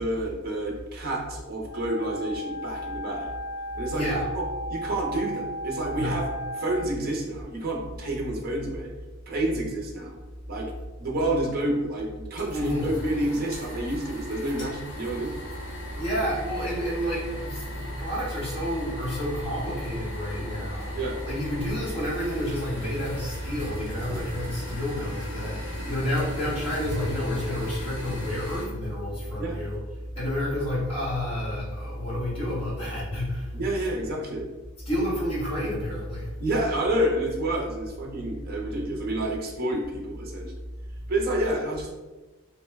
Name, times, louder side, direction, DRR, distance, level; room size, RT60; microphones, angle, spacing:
voice 1, 0.0-3.3 3.7-4.4 4.7-6.3 6.5-8.9 9.3-10.2 10.5-10.7 11.0-15.3 20.9-21.2 24.1-24.2 29.4-29.6 33.5-34.5 36.4-40.5 41.1-41.9, right 1 dB, 45° right, -1 dB, 0.6 m, -29 dB
Wind instrument woodwind instrument, 1.6-6.9, equal, 75° left, 0.5 m, -35 dB
voice 2, 3.9-4.3 5.9-6.2 12.5-12.9 16.0-21.0 21.3-29.8 30.1-33.5 34.8-36.3, equal, 25° left, -8 dB, 1.1 m, -29 dB
sound 1, 12.4-28.6, equal, 60° left, 1.1 m, -39 dB
3.0 x 2.1 x 3.2 m, 1.2 s
head